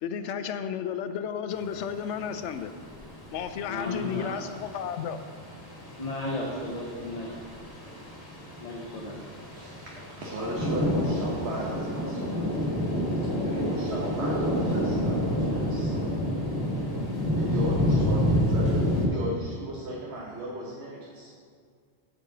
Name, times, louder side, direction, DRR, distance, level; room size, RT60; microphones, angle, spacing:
voice 1, 0.0-2.7 3.3-5.2, left 8 dB, 90° left, 10 dB, 0.9 m, -33 dB
sound 1, 1.5-19.1, equal, 55° left, 2.0 m, -29 dB
voice 2, 3.7-4.5 6.0-7.4 7.8-8.0 8.6-9.2, left 1 dB, 35° left, -3 dB, 1.1 m, -34 dB
voice 3, 9.5-12.7 13.4-16.1 17.4-21.3, right 1 dB, 70° right, -4 dB, 1.4 m, -36 dB
8.5 x 4.9 x 6.6 m, 2.1 s
omnidirectional pair, 1.2 m